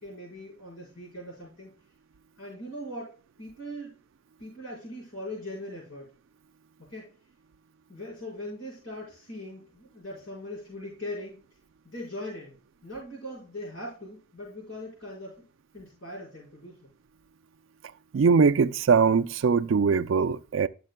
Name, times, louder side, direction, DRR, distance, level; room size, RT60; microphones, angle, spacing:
voice 1, 0.0-1.7 2.4-4.0 4.4-6.1 6.8-7.1 7.9-11.4 11.8-15.5 15.7-16.9, left 1 dB, 75° left, 4.8 m, -40 dB
voice 2, 18.1-20.7, right 5 dB, 75° right, 0.4 m, -21 dB
12.0 x 6.5 x 2.2 m
head